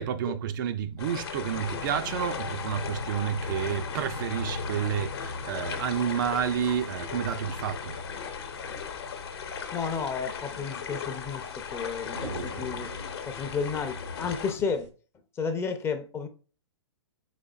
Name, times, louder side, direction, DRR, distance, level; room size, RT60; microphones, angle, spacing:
voice 1, 0.0-8.0 12.2-12.6, right 9 dB, 45° right, 0.4 m, -30 dB
sound 1, 1.0-14.5, left 7 dB, 60° left, 0.9 m, -38 dB
sound 2, 1.2-12.5, left 2 dB, 90° left, 0.6 m, -41 dB
sound 3, 4.1-14.9, equal, 85° right, 1.0 m, -48 dB
voice 2, 9.7-12.9 13.3-14.9 15.4-16.3, left 5 dB, 15° left, 0.5 m, -32 dB
4.8 x 4.0 x 2.3 m
figure-of-eight pair, 115°, 15 cm